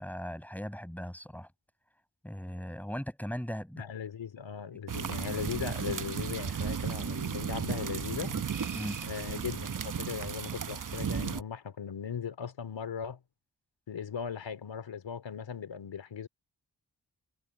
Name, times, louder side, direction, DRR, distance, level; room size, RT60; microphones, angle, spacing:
voice 1, 0.0-1.5 2.2-3.8 8.3-8.4 8.8-9.0, equal, 5° left, 6.7 m, -38 dB
voice 2, 3.8-8.3 9.1-13.2 13.9-16.3, left 7 dB, 80° left, 3.4 m, -38 dB
sound 1, 4.9-11.4, right 7 dB, 45° right, 1.0 m, -35 dB
supercardioid pair, 40°, 44 cm